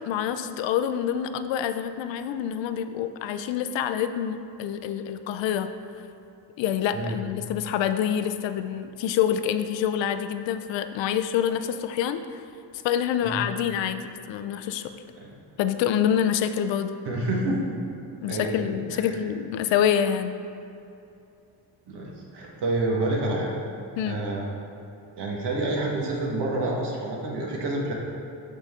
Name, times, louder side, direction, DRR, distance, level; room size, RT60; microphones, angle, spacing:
voice 1, 0.0-5.7 6.6-12.4 12.8-14.9 15.6-17.0 18.2-20.4 24.0-24.2, left 9 dB, 90° left, 10 dB, 0.5 m, -26 dB
voice 2, 17.0-17.6 18.3-19.2 21.9-23.5 24.0-24.5 25.2-27.9, right 2 dB, 65° right, -2 dB, 1.6 m, -28 dB
12.0 x 4.0 x 3.6 m, 2.7 s
cardioid pair, 145°, 43 cm